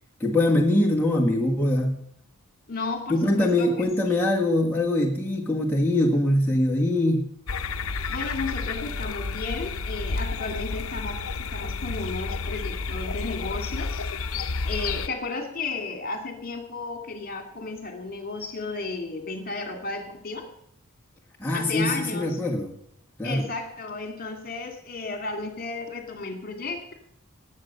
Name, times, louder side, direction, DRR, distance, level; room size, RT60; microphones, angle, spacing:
voice 1, 0.2-2.0 3.1-7.2 21.4-22.7 23.2-23.4, left 1 dB, 10° left, -2 dB, 1.5 m, -23 dB
voice 2, 2.7-4.3 8.1-14.1 14.6-20.5 21.5-22.4 23.2-26.9, left 3 dB, 45° left, 5 dB, 2.3 m, -34 dB
sound 1, 7.5-15.1, left 4 dB, 65° left, 0.8 m, -31 dB
19.0 x 7.9 x 6.6 m, 0.70 s
head